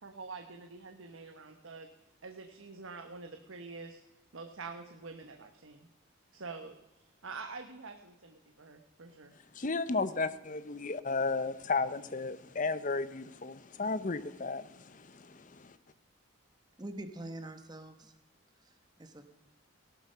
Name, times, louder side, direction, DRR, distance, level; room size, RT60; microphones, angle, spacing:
voice 1, 0.0-1.9 2.2-4.0 4.3-5.9 6.3-9.4, right 4 dB, 70° right, 1.1 m, -46 dB
voice 2, 9.6-15.7, left 3 dB, 40° left, 0.7 m, -34 dB
voice 3, 16.8-18.2 18.6-19.2, right 1 dB, 20° right, 1.0 m, -45 dB
17.0 x 12.0 x 5.6 m
head